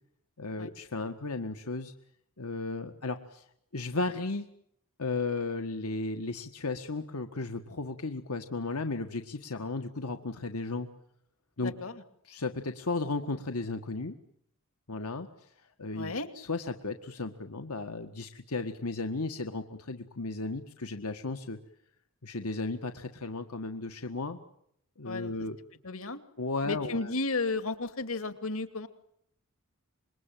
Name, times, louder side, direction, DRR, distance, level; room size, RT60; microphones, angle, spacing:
voice 1, 0.4-1.9 2.4-3.4 3.7-4.5 5.0-10.9 11.6-11.7 12.3-14.1 14.9-15.3 15.8-21.6 22.2-24.4 25.0-25.6 26.4-27.1, left 3 dB, 85° left, 6 dB, 1.7 m, -34 dB
voice 2, 11.6-12.0 15.9-16.3 25.0-25.3 25.8-26.2 26.7-28.9, left 3 dB, 70° left, 10 dB, 2.5 m, -33 dB
27.0 x 22.0 x 9.2 m, 0.71 s
head